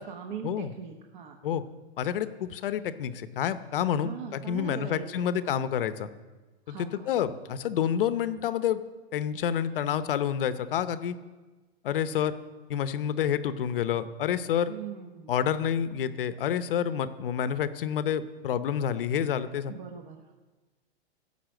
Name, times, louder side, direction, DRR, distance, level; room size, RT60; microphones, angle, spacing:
voice 1, 0.0-1.4 4.0-5.5 6.7-7.1 14.7-15.4 19.7-20.3, right 7 dB, 45° right, 3 dB, 1.1 m, -41 dB
voice 2, 2.0-6.1 6.7-6.8 7.1-8.8 9.1-11.1 11.8-12.3 12.7-14.7 15.3-19.7, left 9 dB, 55° left, 13 dB, 0.8 m, -28 dB
16.5 x 5.6 x 7.6 m, 1.3 s
supercardioid pair, 170°, 33 cm